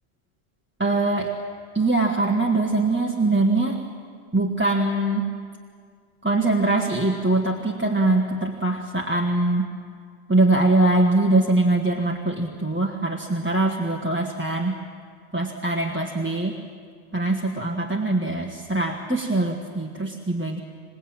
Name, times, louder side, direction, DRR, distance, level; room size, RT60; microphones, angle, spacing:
voice 1, 0.8-1.3 1.7-3.8 4.3-5.3 6.2-9.7 10.3-14.7 15.3-16.5 17.1-20.6, right 2 dB, 10° right, 0 dB, 1.4 m, -22 dB
27.0 x 18.5 x 8.9 m, 2.1 s
omnidirectional pair, 1.2 m